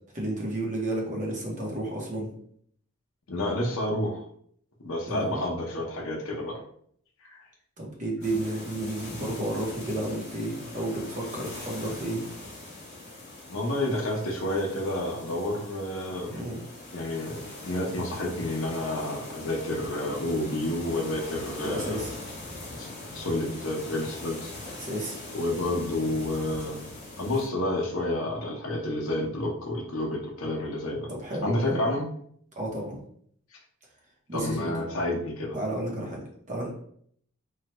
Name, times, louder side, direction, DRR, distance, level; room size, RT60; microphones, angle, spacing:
voice 1, 0.1-2.3 5.1-5.4 7.8-12.2 16.3-16.6 21.6-22.1 24.8-25.2 31.2-31.9 32.6-33.0 34.3-34.7 35.5-36.7, right 1 dB, 35° right, -2 dB, 0.8 m, -32 dB
voice 2, 3.3-4.2 4.8-6.5 7.2-7.4 13.5-16.5 16.9-22.0 22.8-22.9 23.1-24.5 25.3-31.1 31.4-32.1 34.3-35.5, left 1 dB, 70° left, -1 dB, 0.7 m, -30 dB
sound 1, 8.2-27.5, left 2 dB, 35° left, 1.1 m, -42 dB
3.1 x 2.2 x 2.9 m, 0.64 s
head